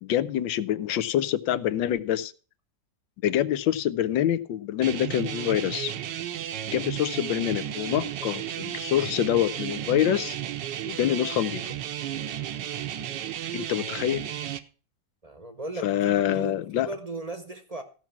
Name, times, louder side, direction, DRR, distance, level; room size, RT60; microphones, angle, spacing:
voice 1, 0.0-2.3 3.2-5.9 6.7-10.4 10.9-11.6 13.5-14.3 15.8-16.9, left 11 dB, 85° left, 1.4 m, -26 dB
sound 1, 4.8-14.6, right 11 dB, 75° right, 1.4 m, -33 dB
voice 2, 15.2-17.8, right 2 dB, 30° right, 0.8 m, -37 dB
15.0 x 6.0 x 5.8 m
omnidirectional pair, 2.0 m